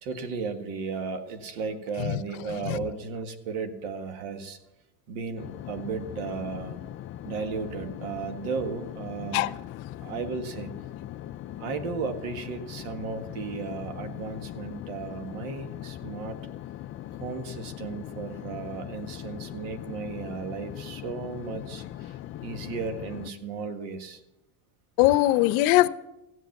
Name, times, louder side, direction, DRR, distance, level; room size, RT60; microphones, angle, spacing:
voice 1, 0.0-4.6 5.1-6.8 7.2-9.5 10.0-10.7 11.6-16.4 17.2-24.2, right 5 dB, 85° right, 1.8 m, -35 dB
voice 2, 2.5-2.8 9.3-9.5 25.0-25.9, left 16 dB, 75° left, 0.8 m, -21 dB
sound 1, 5.4-23.3, left 12 dB, 30° left, 0.4 m, -40 dB
15.5 x 8.1 x 7.2 m
supercardioid pair, 125°, 43 cm